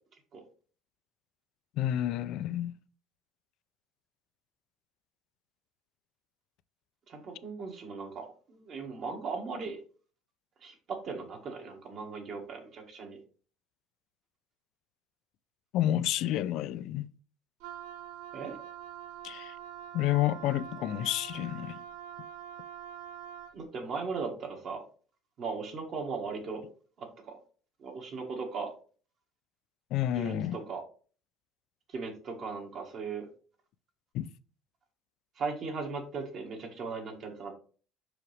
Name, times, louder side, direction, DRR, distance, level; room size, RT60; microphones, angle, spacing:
voice 1, 1.8-2.7 15.7-17.1 19.2-19.6 19.9-21.8 29.9-30.6 34.1-34.3, left 13 dB, 60° left, 0.4 m, -30 dB
voice 2, 7.1-9.8 10.6-13.2 18.3-18.6 23.5-24.8 25.4-26.7 27.0-27.4 27.8-28.7 30.1-30.8 31.9-33.3 35.3-37.5, right 4 dB, 40° right, 1.6 m, -38 dB
Wind instrument woodwind instrument, 17.6-23.6, right 10 dB, 80° right, 0.8 m, -45 dB
5.9 x 4.9 x 3.3 m
cardioid pair, 155°, 0 cm